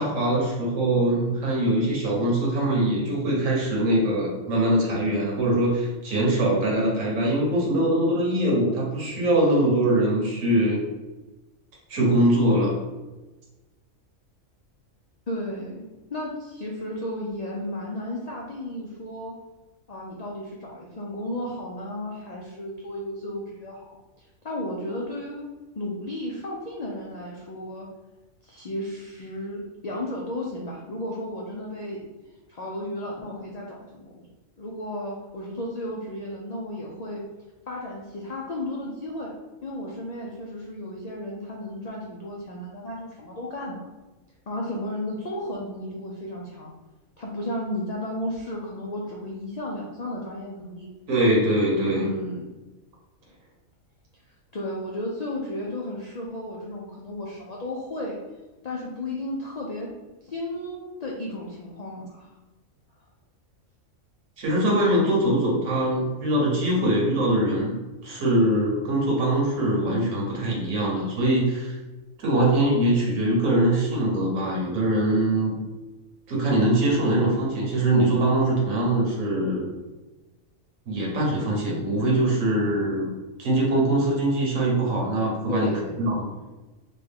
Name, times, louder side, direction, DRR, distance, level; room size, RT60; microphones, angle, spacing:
voice 1, 0.0-10.8 11.9-12.8 51.1-52.1 64.4-71.8 72.2-75.6 76.3-79.7 80.9-83.1 83.4-85.7 86.0-86.3, right 1 dB, 75° right, -3 dB, 1.4 m, -22 dB
voice 2, 15.3-19.3 19.9-25.5 25.8-27.9 28.4-32.0 32.5-34.3 34.6-37.2 37.7-39.3 39.6-43.9 44.5-46.7 47.2-50.9 51.9-52.5 54.5-58.2 58.6-59.9 60.2-62.3 85.5-86.0, left 1 dB, 90° left, -3 dB, 0.3 m, -34 dB
3.8 x 2.3 x 3.5 m, 1.1 s
omnidirectional pair, 1.4 m